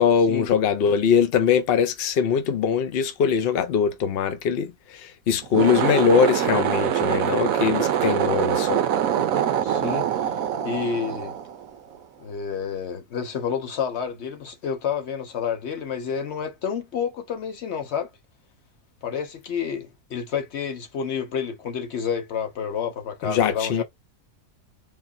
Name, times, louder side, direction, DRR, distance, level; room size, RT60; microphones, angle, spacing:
voice 1, 0.0-8.8 23.2-23.8, left 7 dB, 70° left, 0.5 m, -22 dB
sound 1, 5.4-12.0, right 9 dB, 65° right, 1.0 m, -24 dB
voice 2, 9.6-10.1 10.6-11.3 12.2-18.1 19.0-23.8, left 7 dB, 50° left, 1.1 m, -29 dB
3.8 x 2.8 x 2.6 m
omnidirectional pair, 1.7 m